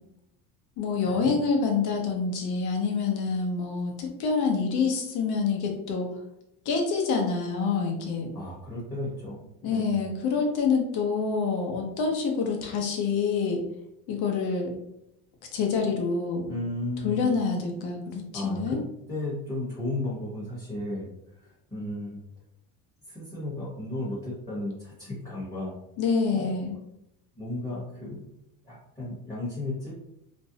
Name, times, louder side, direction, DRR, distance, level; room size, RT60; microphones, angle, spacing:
voice 1, 0.8-6.1 6.7-8.3 9.6-13.6 14.1-14.7 15.5-16.5 17.0-18.8 26.0-26.7, left 5 dB, 55° left, 1 dB, 0.8 m, -27 dB
voice 2, 8.3-10.0 16.5-17.2 18.3-18.8 19.1-22.2 23.1-25.8 26.3-26.5 27.3-28.2 28.6-29.9, left 1 dB, 10° left, -8 dB, 0.9 m, -34 dB
2.5 x 2.0 x 2.7 m, 0.81 s
supercardioid pair, 110°, 44 cm